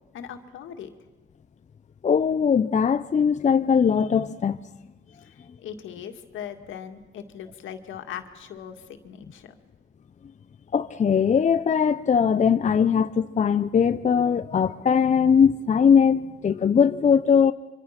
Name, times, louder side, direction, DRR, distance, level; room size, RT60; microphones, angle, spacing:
voice 1, 0.1-0.9 5.2-9.6, left 8 dB, 75° left, 2.1 m, -39 dB
voice 2, 2.0-4.6 10.7-17.5, left 7 dB, 35° left, 0.7 m, -20 dB
25.5 x 25.0 x 6.0 m
cardioid pair, 90°, 20 cm